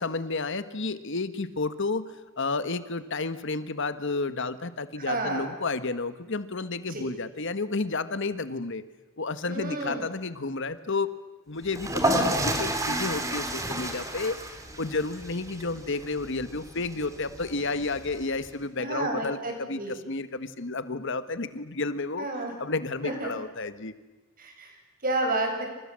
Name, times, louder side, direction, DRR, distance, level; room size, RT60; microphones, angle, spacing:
voice 1, 0.0-8.8 9.2-11.1 11.5-14.3 14.8-22.3 22.6-23.9, left 3 dB, 60° left, 12 dB, 1.4 m, -31 dB
voice 2, 5.0-5.5 6.9-7.1 9.5-10.1 18.8-20.0 22.2-22.5 23.0-23.3 24.4-24.8 25.0-25.7, right 2 dB, 45° right, 3 dB, 7.0 m, -30 dB
sound 1, 11.7-18.5, right 1 dB, 15° right, 3.4 m, -31 dB
29.5 x 27.0 x 7.6 m, 1.1 s
head